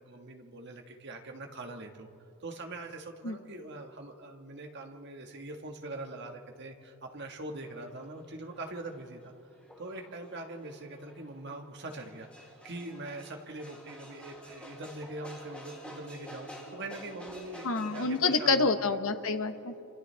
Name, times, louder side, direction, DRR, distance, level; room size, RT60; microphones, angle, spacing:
voice 1, 0.0-2.1 2.4-9.3 9.8-18.7, right 2 dB, 55° right, 3 dB, 1.6 m, -43 dB
sound 1, 7.6-18.2, equal, 5° left, 3.7 m, -50 dB
voice 2, 17.6-19.8, left 3 dB, 75° left, 8 dB, 1.0 m, -28 dB
30.0 x 26.5 x 3.4 m, 2.9 s
head